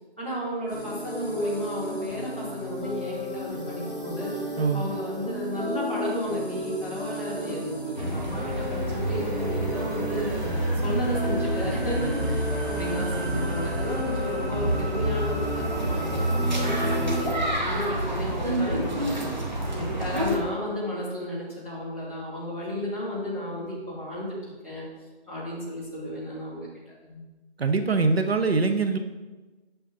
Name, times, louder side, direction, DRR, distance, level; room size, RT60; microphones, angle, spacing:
voice 1, 0.2-4.3 4.7-10.4 10.8-16.2 16.5-24.9 25.3-26.7 27.0-27.2, equal, 10° right, -10 dB, 1.0 m, -33 dB
sound 1, 0.7-17.3, equal, 5° left, 2.4 m, -31 dB
voice 2, 4.6-4.9 27.6-29.0, right 4 dB, 65° right, 8 dB, 0.6 m, -23 dB
sound 2, 8.0-20.4, right 1 dB, 45° right, 1.1 m, -30 dB
7.7 x 6.9 x 2.7 m, 1.2 s
figure-of-eight pair, 180°, 32 cm